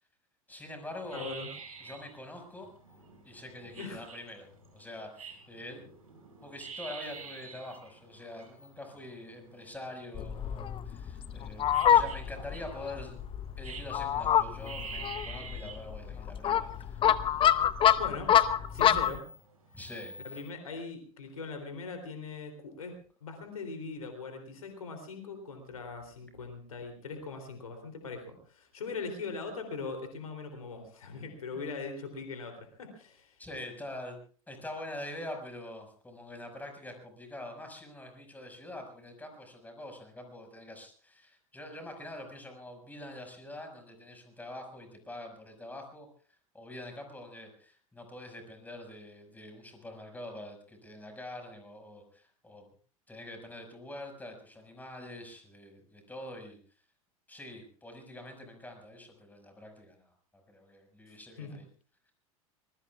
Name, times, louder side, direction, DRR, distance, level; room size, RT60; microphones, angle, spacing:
voice 1, 0.5-1.3 1.8-2.7 3.2-5.8 6.4-13.2 13.6-17.1 19.7-20.4 31.5-31.6 33.4-34.2 34.5-46.1 46.5-52.7 53.1-56.6 57.3-61.7, left 1 dB, 10° left, 4 dB, 5.8 m, -45 dB
sound 1, 1.0-20.4, right 5 dB, 80° right, 5.1 m, -48 dB
voice 2, 1.1-1.5 3.8-4.0 18.0-18.4 18.7-19.3 20.2-33.3 61.1-61.6, left 4 dB, 75° left, 5 dB, 3.3 m, -41 dB
Fowl, 10.1-19.2, left 9 dB, 30° left, 0.9 m, -27 dB
25.5 x 20.5 x 2.4 m, 0.42 s
figure-of-eight pair, 85°, 18 cm